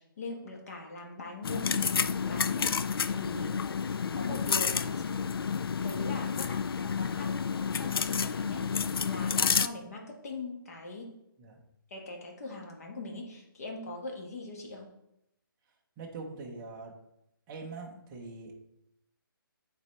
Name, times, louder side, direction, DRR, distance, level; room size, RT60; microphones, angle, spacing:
voice 1, 0.0-3.6 4.1-5.1 5.8-11.1 11.9-14.9, left 3 dB, 40° left, 0 dB, 1.6 m, -41 dB
sound 1, 1.4-9.7, left 6 dB, 90° left, 0.4 m, -30 dB
voice 2, 16.0-16.9 17.5-18.5, right 3 dB, 10° right, -2 dB, 0.6 m, -43 dB
9.1 x 4.1 x 3.3 m, 0.83 s
hypercardioid pair, 170°, 12 cm